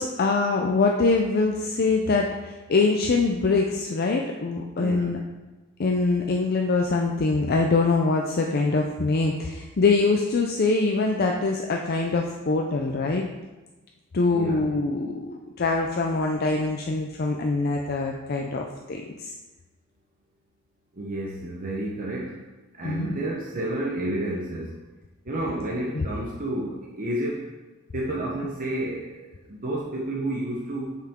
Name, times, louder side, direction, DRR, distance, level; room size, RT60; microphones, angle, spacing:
voice 1, 0.0-5.2 5.8-13.2 14.1-19.3 22.8-23.2 25.9-26.1, left 3 dB, 50° left, 1 dB, 0.5 m, -24 dB
voice 2, 4.8-5.1 14.3-14.6 21.0-22.4 22.8-24.7 25.2-27.5 27.9-31.0, right 1 dB, 40° right, -4 dB, 0.9 m, -30 dB
7.4 x 5.7 x 3.6 m, 1.2 s
head